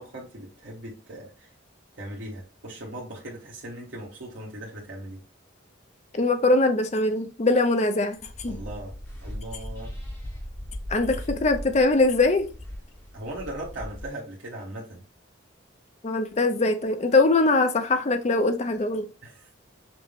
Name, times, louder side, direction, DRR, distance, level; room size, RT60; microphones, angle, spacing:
voice 1, 0.0-1.5 2.0-5.2 8.5-8.9 9.2-9.9 13.1-15.0 19.2-19.5, right 1 dB, 70° right, 1.2 m, -39 dB
voice 2, 6.1-8.6 10.9-12.5 16.0-19.1, left 2 dB, 35° left, 0.5 m, -22 dB
sound 1, 8.2-14.1, equal, 10° left, 0.9 m, -38 dB
5.9 x 2.1 x 3.4 m
head